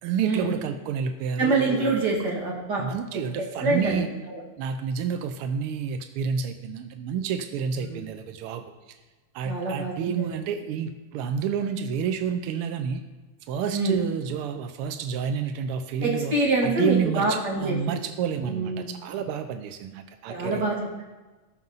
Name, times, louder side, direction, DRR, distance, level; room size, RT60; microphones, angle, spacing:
voice 1, 0.0-2.3 2.8-4.1 4.6-8.7 9.3-13.0 13.5-16.3 16.6-20.6, right 7 dB, 85° right, 8 dB, 1.2 m, -29 dB
voice 2, 1.4-2.8 3.1-3.2 3.6-4.4 7.8-8.1 9.4-9.9 10.2-10.5 13.7-14.0 16.0-18.0 18.4-18.9 20.3-21.0, right 2 dB, 40° right, -2 dB, 2.5 m, -26 dB
18.0 x 6.2 x 4.0 m, 1.2 s
omnidirectional pair, 3.3 m